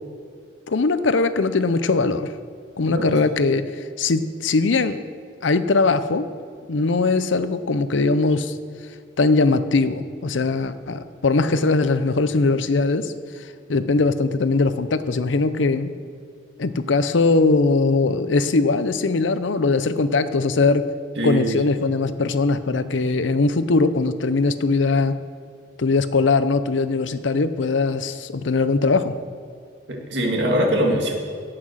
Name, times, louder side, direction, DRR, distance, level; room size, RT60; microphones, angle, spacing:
voice 1, 0.7-2.3 2.8-3.6 4.0-5.0 5.4-6.3 6.7-8.5 9.2-13.1 13.4-15.9 16.6-20.8 21.2-25.2 25.8-29.1, left 3 dB, 80° left, 12 dB, 0.6 m, -20 dB
voice 2, 2.8-3.2 21.2-21.6 29.9-31.1, equal, 65° right, 0 dB, 2.1 m, -22 dB
17.0 x 6.0 x 6.4 m, 2.3 s
head